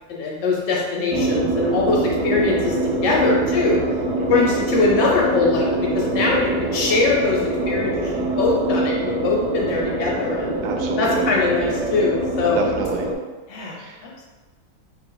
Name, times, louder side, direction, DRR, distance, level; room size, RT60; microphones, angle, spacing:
voice 1, 0.1-2.8 3.0-3.8 4.3-7.4 7.6-10.5 11.0-12.6 13.5-14.1, left 4 dB, 65° left, -3 dB, 1.3 m, -22 dB
sound 1, 1.1-13.1, right 2 dB, 65° right, 0.9 m, -24 dB
voice 2, 10.6-11.3 12.5-13.1 13.8-14.0, right 4 dB, 85° right, 2 dB, 1.4 m, -28 dB
4.1 x 2.4 x 3.8 m, 1.2 s
omnidirectional pair, 2.2 m